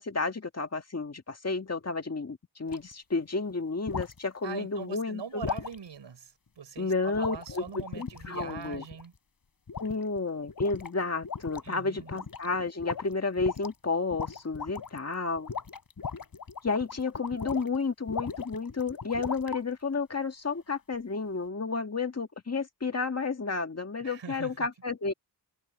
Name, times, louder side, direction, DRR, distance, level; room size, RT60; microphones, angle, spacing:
voice 1, 0.0-5.4 6.8-8.8 9.8-15.5 16.6-25.1, left 4 dB, 35° left, 2.0 m, -31 dB
sound 1, 2.7-2.9 3.9-4.2 5.4-5.7 7.1-9.0 9.7-10.2 10.5-10.9 11.2-11.7 12.0-12.5 12.8-13.7 14.1-15.0 15.4-17.8 18.1-19.6, left 5 dB, 50° left, 4.2 m, -38 dB
voice 2, 4.4-9.1 11.6-12.3 24.0-24.7, right 6 dB, 80° right, 5.8 m, -42 dB
wide cardioid pair, 110°, 43 cm